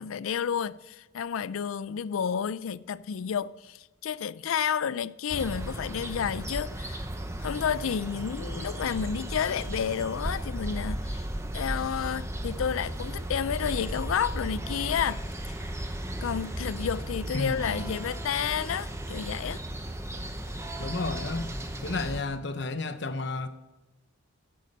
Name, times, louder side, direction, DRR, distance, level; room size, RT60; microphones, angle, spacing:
voice 1, 0.0-7.0 7.4-11.2 11.5-15.2 16.2-19.6, left 7 dB, 80° left, 0.4 m, -31 dB
sound 1, 5.3-22.2, right 1 dB, 15° right, 0.8 m, -35 dB
voice 2, 17.3-17.8 20.8-21.5 21.8-23.5, left 3 dB, 55° left, 0.8 m, -32 dB
15.0 x 9.4 x 5.4 m
head